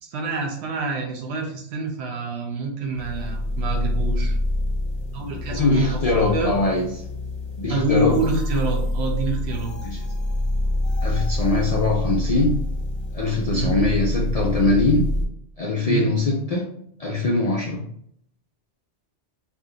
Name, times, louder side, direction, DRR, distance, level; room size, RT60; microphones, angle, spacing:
voice 1, 0.0-4.4 5.1-6.0 6.3-6.5 7.7-9.7 13.5-13.7 15.8-16.1, right 3 dB, 65° right, 1 dB, 1.0 m, -26 dB
sound 1, 2.9-15.2, left 1 dB, 30° left, 0.7 m, -26 dB
voice 2, 5.5-6.8 7.6-8.2 9.8-10.0 11.0-12.6 13.1-15.1 15.6-16.7 17.0-17.8, left 2 dB, 60° left, -2 dB, 0.4 m, -22 dB
2.9 x 2.4 x 3.7 m, 0.68 s
omnidirectional pair, 1.2 m